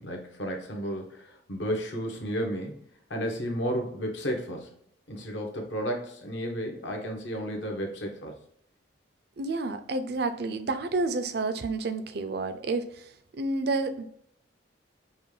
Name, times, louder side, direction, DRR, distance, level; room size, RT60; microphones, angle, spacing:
voice 1, 0.0-2.8 3.1-4.7 5.1-8.4, equal, 65° left, 2 dB, 1.0 m, -33 dB
voice 2, 9.4-12.8 13.4-14.0, right 3 dB, 55° right, 10 dB, 0.4 m, -29 dB
5.4 x 2.2 x 3.2 m, 0.69 s
head